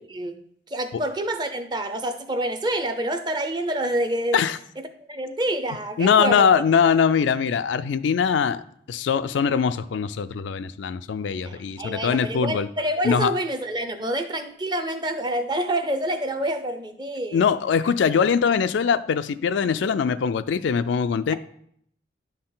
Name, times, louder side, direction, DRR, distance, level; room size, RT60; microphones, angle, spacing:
voice 1, 0.7-4.4 5.1-6.5 11.4-17.5, right 1 dB, 25° right, 0.6 m, -27 dB
voice 2, 6.0-8.6 8.9-12.7 13.0-13.3 17.3-21.3, left 6 dB, 70° left, 0.3 m, -22 dB
10.0 x 4.3 x 3.8 m
head